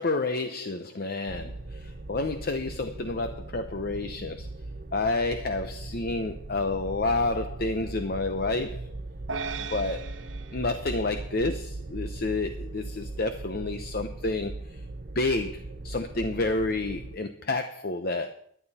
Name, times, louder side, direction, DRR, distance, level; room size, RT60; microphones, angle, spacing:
voice 1, 0.0-4.5 4.9-8.9 9.6-10.1 10.5-14.8 15.1-18.3, left 2 dB, 50° left, 8 dB, 0.8 m, -29 dB
sound 1, 1.3-17.2, right 2 dB, 45° right, 0.7 m, -39 dB
sound 2, 9.3-11.8, right 4 dB, 70° right, 1.0 m, -38 dB
18.0 x 11.0 x 4.3 m, 0.65 s
head